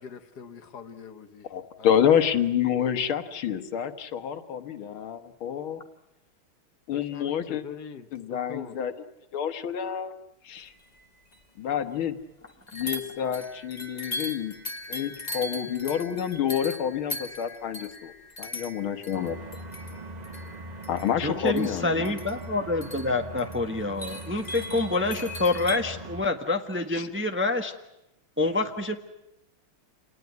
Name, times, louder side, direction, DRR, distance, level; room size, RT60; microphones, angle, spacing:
voice 1, 0.0-1.5 1.8-1.9 6.9-8.8, left 6 dB, 55° left, 9 dB, 1.9 m, -43 dB
voice 2, 1.4-5.8 6.9-7.6 8.1-9.1 9.3-10.1 10.4-10.7 11.6-12.2 12.7-14.5 14.9-18.1 18.4-19.4 20.9-22.1 26.9-27.1, left 9 dB, 80° left, 9 dB, 2.1 m, -28 dB
sound 1, 11.0-11.1 11.3-11.4 12.7-25.8, left 1 dB, 20° left, 1.4 m, -39 dB
sound 2, 19.1-26.2, right 1 dB, 35° right, 0.6 m, -41 dB
voice 3, 21.2-27.7 28.4-29.0, left 2 dB, 5° right, 5 dB, 1.0 m, -27 dB
28.0 x 19.5 x 9.4 m, 0.92 s
omnidirectional pair, 2.3 m